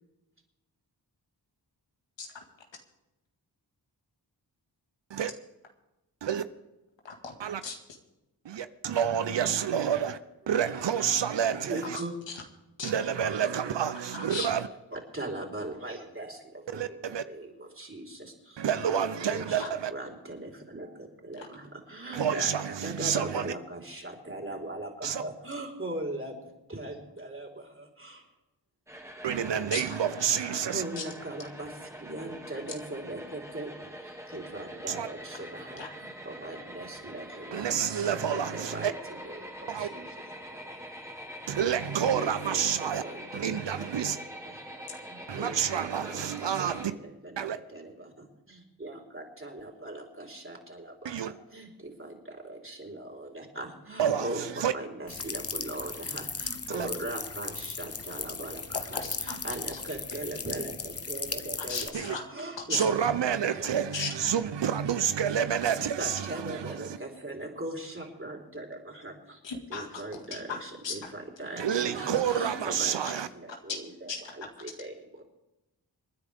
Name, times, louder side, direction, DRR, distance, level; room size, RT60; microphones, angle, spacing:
voice 1, 7.0-7.4 7.6-7.8 11.9-12.0 12.8-12.9 14.1-14.5 19.6-19.7 21.4-21.5 29.7-29.8 31.0-31.1 35.8-35.9 58.9-59.4 59.7-59.8 61.6-62.2 62.6-62.8 63.9-64.1 69.4-70.9 73.0-73.1 74.1-74.2, left 5 dB, 85° left, 2.1 m, -36 dB
voice 2, 8.4-10.2 10.5-12.0 12.8-14.7 16.7-17.2 18.6-19.9 22.1-23.5 25.0-25.2 29.2-30.8 34.9-35.1 37.5-38.9 39.7-39.9 41.5-43.0 43.3-44.2 45.3-46.9 47.4-47.6 51.0-51.3 54.0-54.7 56.7-56.9 61.9-62.1 62.7-67.0 71.6-73.3, right 8 dB, 75° right, 0.8 m, -29 dB
voice 3, 9.2-9.6 10.9-11.0 11.7-12.1 13.6-13.7 14.9-18.6 18.9-28.3 30.6-33.7 34.0-38.9 39.2-40.1 40.4-40.6 42.1-43.9 44.5-44.6 45.1-47.4 47.7-63.8 66.0-69.4 69.7-75.2, right 1 dB, 30° right, 4.2 m, -40 dB
sound 1, 28.9-46.8, equal, 5° right, 2.5 m, -44 dB
sound 2, 55.1-61.9, left 4 dB, 35° left, 1.0 m, -37 dB
27.5 x 10.0 x 3.6 m
cardioid pair, 40°, 43 cm